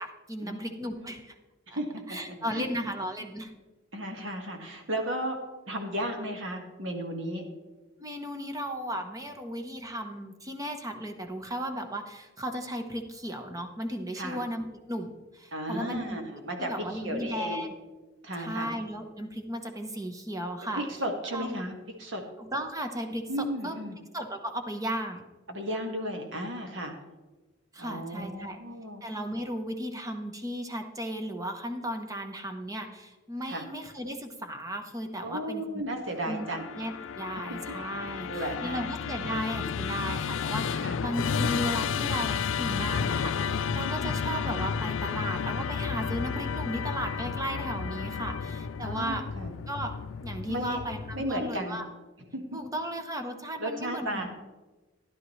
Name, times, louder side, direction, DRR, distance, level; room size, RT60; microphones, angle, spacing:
voice 1, 0.0-1.3 1.7-1.8 2.1-3.5 8.0-16.2 16.6-17.7 18.4-20.8 21.3-21.6 22.4-23.8 24.1-25.2 27.7-28.6 29.0-35.8 36.3-36.5 36.7-49.2 49.7-49.9 50.2-51.8 52.5-54.3, equal, 20° right, 5 dB, 0.9 m, -35 dB
voice 2, 1.7-2.0 2.3-2.7 3.9-5.4 5.7-7.4 14.2-14.4 15.5-17.7 18.2-18.7 20.7-21.7 22.0-22.2 23.3-24.0 25.5-26.9 27.8-29.0 33.5-33.6 35.2-36.8 37.5-37.8 38.3-38.9 39.2-39.7 40.8-41.0 43.7-44.1 48.8-49.5 50.5-50.8 51.1-51.8 52.3-52.6 53.6-54.3, right 1 dB, 70° right, 3 dB, 1.8 m, -34 dB
Musical instrument, 36.2-51.5, left 6 dB, 80° left, 0.4 m, -32 dB
13.0 x 11.5 x 3.2 m, 1.2 s
head